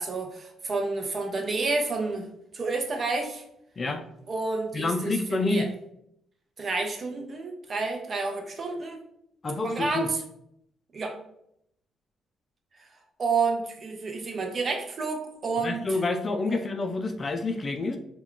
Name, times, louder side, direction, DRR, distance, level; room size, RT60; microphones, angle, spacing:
voice 1, 0.0-2.3 2.5-3.4 4.3-5.7 6.6-9.0 9.6-10.2 10.9-11.2 13.2-15.8 16.5-16.6, right 3 dB, 45° right, 3 dB, 0.6 m, -29 dB
voice 2, 4.7-5.7 9.4-10.1 15.6-18.0, left 3 dB, 35° left, 6 dB, 0.3 m, -28 dB
2.2 x 2.2 x 3.6 m, 0.75 s
cardioid pair, 90°, 0 cm